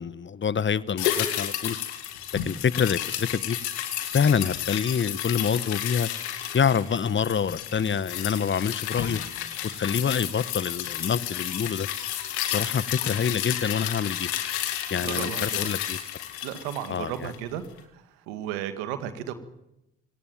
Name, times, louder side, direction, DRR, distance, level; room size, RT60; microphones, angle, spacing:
voice 1, 0.0-1.8 2.4-3.6 4.1-6.1 6.5-9.2 9.7-11.9 12.5-14.3 14.9-16.2 16.9-17.3, left 7 dB, 35° left, 1.1 m, -26 dB
sound 1, 1.0-17.5 17.8-17.9, left 11 dB, 90° left, 2.2 m, -31 dB
voice 2, 14.9-15.7 16.4-17.6 17.9-19.3, right 10 dB, 85° right, 2.0 m, -34 dB
27.0 x 18.0 x 9.2 m
hypercardioid pair, 50°, 33 cm